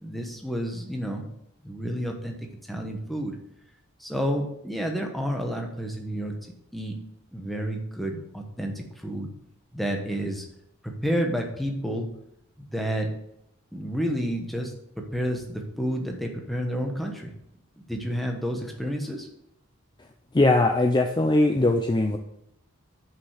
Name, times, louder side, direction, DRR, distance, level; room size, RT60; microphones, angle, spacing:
voice 1, 0.0-1.2 1.6-2.4 2.7-3.3 4.0-6.3 6.7-6.9 7.3-9.3 9.7-10.4 11.0-12.1 12.6-13.1 13.7-17.3 17.8-19.3, equal, ahead, 2 dB, 1.1 m, -30 dB
voice 2, 20.3-22.2, left 2 dB, 20° left, 4 dB, 0.5 m, -20 dB
6.5 x 5.6 x 6.5 m, 0.79 s
head